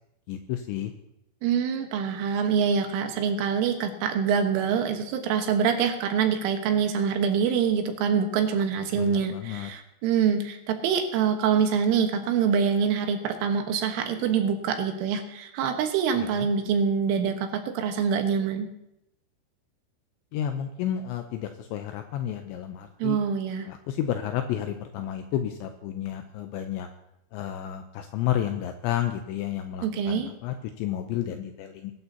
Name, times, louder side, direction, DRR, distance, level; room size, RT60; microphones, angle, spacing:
voice 1, 0.3-0.9 8.9-9.7 16.2-16.5 20.3-23.2 23.7-26.9 27.3-31.9, left 11 dB, 85° left, 6 dB, 2.7 m, -31 dB
voice 2, 1.4-18.7 23.0-23.7 29.8-30.3, right 7 dB, 75° right, 5 dB, 3.7 m, -25 dB
21.5 x 12.5 x 2.8 m, 0.83 s
omnidirectional pair, 5.9 m